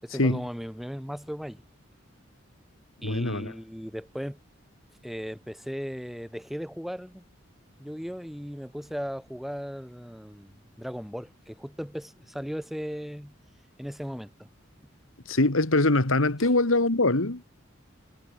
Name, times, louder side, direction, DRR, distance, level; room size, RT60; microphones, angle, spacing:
voice 1, 0.0-1.6 3.0-4.4 5.0-7.2 7.8-13.4 13.8-14.5 16.4-16.5, equal, ahead, 2.8 m, -37 dB
voice 2, 3.0-3.5 15.3-17.5, left 2 dB, 80° left, 2.1 m, -23 dB
head